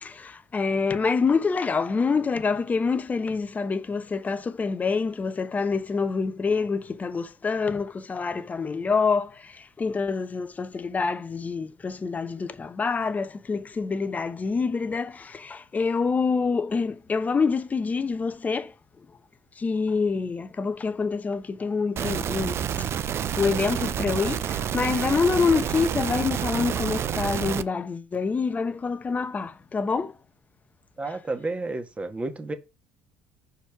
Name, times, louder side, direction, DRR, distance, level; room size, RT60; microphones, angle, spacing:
voice 1, 0.0-9.3 9.8-18.7 19.6-22.6 23.4-30.1, left 4 dB, 30° left, 0.9 m, -26 dB
sound 1, 22.0-27.6, right 9 dB, 50° right, 0.6 m, -28 dB
voice 2, 31.0-32.5, right 2 dB, 20° right, 1.6 m, -31 dB
5.3 x 4.4 x 5.9 m
supercardioid pair, 85°, 6 cm